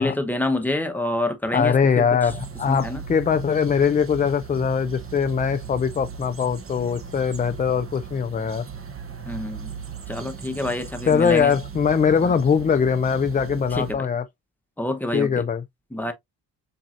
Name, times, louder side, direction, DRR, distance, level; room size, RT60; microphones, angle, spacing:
voice 1, 0.0-2.0 2.7-3.0 9.3-9.7 10.1-11.5 12.2-12.3 13.7-14.1 14.8-15.3 15.9-16.1, left 1 dB, 5° left, 0.9 m, -27 dB
voice 2, 1.5-8.7 11.1-14.2 15.1-15.6, left 6 dB, 20° left, 0.3 m, -22 dB
sound 1, 2.3-13.9, right 6 dB, 35° right, 0.8 m, -37 dB
7.3 x 2.6 x 2.5 m
cardioid pair, 105°, 41 cm